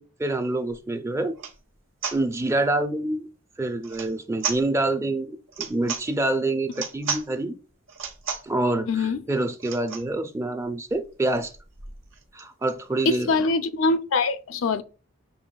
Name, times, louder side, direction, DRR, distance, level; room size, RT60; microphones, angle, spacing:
voice 1, 0.0-1.4 2.1-3.3 3.6-7.5 8.4-11.5 12.3-13.3, right 2 dB, 15° right, 0.4 m, -26 dB
sound 1, 0.7-0.8 1.3-1.6 2.0-2.2 3.8-4.1 4.4-4.6 5.5-6.0 6.7-7.3 7.9-8.5 9.6-10.1 10.6-10.7 10.9-11.0 11.3-12.8, right 6 dB, 70° right, 1.1 m, -33 dB
voice 2, 8.9-9.2 13.0-14.8, left 3 dB, 75° left, 0.4 m, -23 dB
6.8 x 3.0 x 2.3 m
head